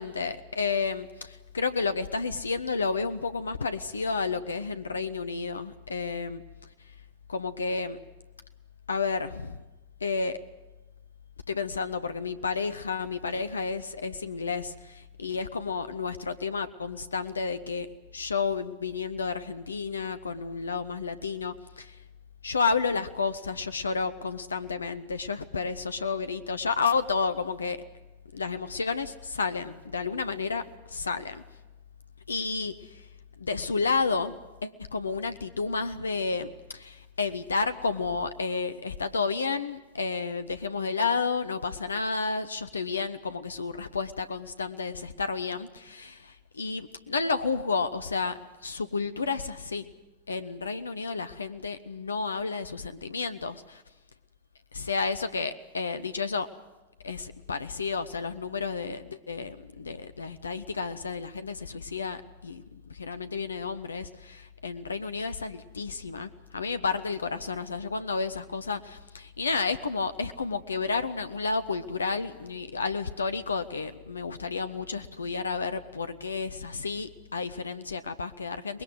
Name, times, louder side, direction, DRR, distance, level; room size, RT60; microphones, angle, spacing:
voice 1, 0.0-6.4 7.3-8.0 8.9-9.6 10.0-10.4 11.5-17.9 18.1-22.0 22.4-27.8 28.3-31.4 32.3-33.1 33.4-49.8 50.3-53.8 54.7-56.5 57.0-78.8, left 4 dB, 75° left, 12 dB, 0.8 m, -31 dB
24.5 x 20.5 x 8.0 m, 1.1 s
figure-of-eight pair, 90°, 0 cm